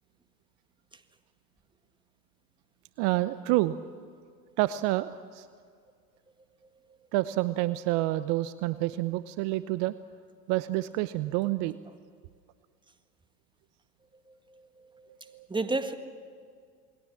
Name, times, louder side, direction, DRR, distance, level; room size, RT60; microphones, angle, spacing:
voice 1, 3.0-3.8 4.6-5.5 7.1-9.9 10.5-11.8 15.3-15.5, right 17 dB, 50° right, 0.9 m, -28 dB
voice 2, 14.3-15.2 15.5-15.9, right 3 dB, 10° right, 1.8 m, -33 dB
28.5 x 20.5 x 7.3 m
hypercardioid pair, 90°, 50 cm